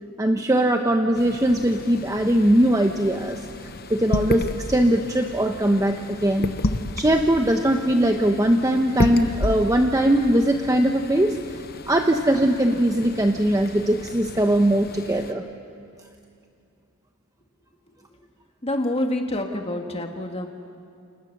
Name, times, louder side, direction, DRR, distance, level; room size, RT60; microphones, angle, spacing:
voice 1, 0.2-3.5 3.9-6.5 7.0-11.4 11.9-15.4, right 1 dB, 15° right, 4 dB, 0.9 m, -20 dB
sound 1, 1.2-15.3, left 2 dB, 45° left, 1.0 m, -32 dB
voice 2, 18.6-20.5, left 1 dB, 30° left, 3 dB, 1.7 m, -27 dB
30.0 x 28.0 x 6.7 m, 2.5 s
head